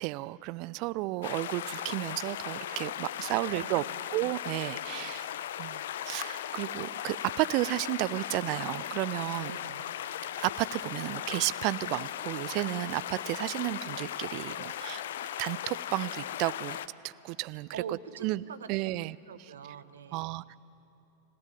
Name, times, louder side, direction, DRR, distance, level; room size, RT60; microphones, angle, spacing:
voice 1, 0.0-3.8 4.1-5.3 5.6-9.5 10.4-15.0 15.4-16.8 17.0-17.7 18.2-18.4 18.7-19.2 20.1-20.6, right 19 dB, 45° right, 20 dB, 0.4 m, -32 dB
sound 1, 1.2-16.9, left 11 dB, 60° left, 0.6 m, -37 dB
voice 2, 3.3-4.0 9.3-9.9 17.7-18.7 19.0-20.4, right 7 dB, 65° right, 13 dB, 0.9 m, -44 dB
26.5 x 15.5 x 9.7 m, 2.9 s
figure-of-eight pair, 90°, 0 cm